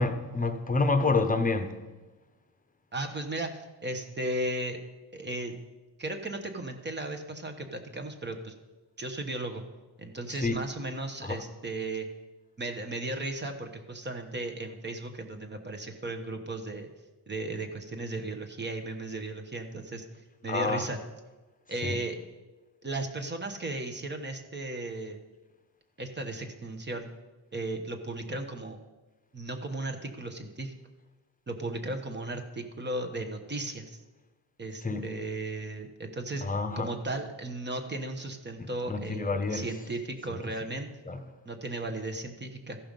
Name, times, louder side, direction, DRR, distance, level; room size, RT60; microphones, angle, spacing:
voice 1, 0.0-1.8 10.3-10.6 11.2-11.4 20.5-20.8 21.8-22.0 34.8-35.1 36.4-36.9 38.6-39.7 40.3-40.4 41.1-41.2, left 3 dB, 20° left, 0.9 m, -28 dB
voice 2, 2.9-4.8 5.1-5.6 6.0-8.5 9.0-9.6 10.0-12.1 12.6-16.9 17.3-20.0 20.4-21.0 21.7-22.2 22.8-25.2 26.0-27.1 27.5-28.8 29.3-30.7 31.5-34.0 34.6-36.4 36.7-40.9 41.4-42.8, right 2 dB, 25° right, 1.1 m, -35 dB
14.0 x 5.7 x 5.3 m
cardioid pair, 100°, 45 cm